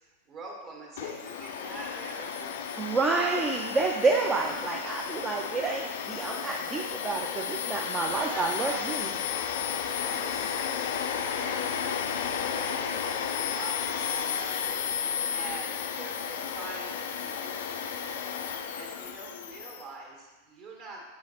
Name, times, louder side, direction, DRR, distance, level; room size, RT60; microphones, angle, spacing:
voice 1, 0.3-2.5 8.1-9.1 10.0-11.8 12.5-12.9 13.3-14.7 15.3-18.2 18.7-21.0, right 2 dB, 40° right, -1 dB, 1.8 m, -44 dB
Domestic sounds home sounds, 1.0-19.8, left 7 dB, 60° left, 0.5 m, -33 dB
voice 2, 2.8-9.1, right 3 dB, 20° right, 0 dB, 0.5 m, -29 dB
7.5 x 5.5 x 3.0 m, 1.2 s
figure-of-eight pair, 90°, 0 cm